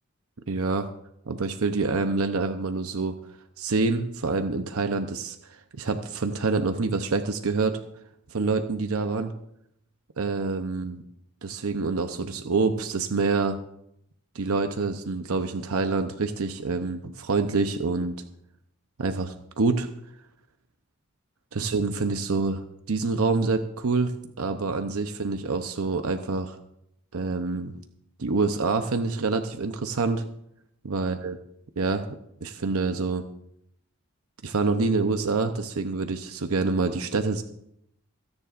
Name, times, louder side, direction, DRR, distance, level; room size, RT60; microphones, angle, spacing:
voice 1, 0.5-0.9 1.3-3.2 3.6-7.8 8.3-9.3 10.2-11.0 11.4-13.6 14.3-18.1 19.0-19.9 21.5-26.6 27.1-27.7 28.2-30.2 30.8-31.4 31.8-32.0 32.4-33.2 34.4-37.4, right 3 dB, 90° right, 7 dB, 0.8 m, -26 dB
28.5 x 9.8 x 2.5 m, 0.76 s
head